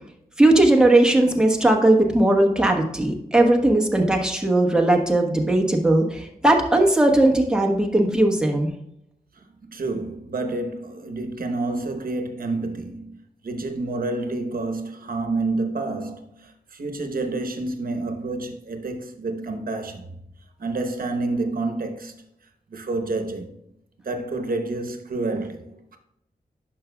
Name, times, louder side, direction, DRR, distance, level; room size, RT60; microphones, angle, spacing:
voice 1, 0.4-8.7, right 1 dB, 5° right, 1.2 m, -18 dB
voice 2, 9.4-13.2 13.4-20.1 20.6-22.2 22.7-23.5 24.0-26.0, right 2 dB, 70° right, 1.0 m, -29 dB
10.5 x 5.9 x 2.3 m
wide cardioid pair, 110°, 16 cm